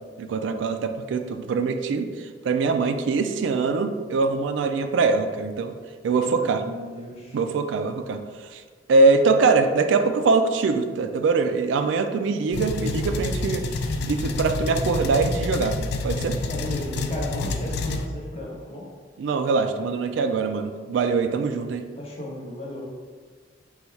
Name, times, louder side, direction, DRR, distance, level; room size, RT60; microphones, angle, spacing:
voice 1, 0.2-5.8 6.0-6.6 7.3-8.2 8.5-8.6 8.9-13.7 14.1-15.8 16.0-16.4 19.2-21.8, right 4 dB, 75° right, 7 dB, 0.3 m, -23 dB
voice 2, 6.2-7.4 16.5-18.9 22.0-22.8, left 1 dB, 35° left, -4 dB, 1.0 m, -35 dB
sound 1, 12.5-18.1, left 2 dB, 60° left, 0.3 m, -28 dB
4.1 x 2.3 x 4.4 m, 1.5 s
head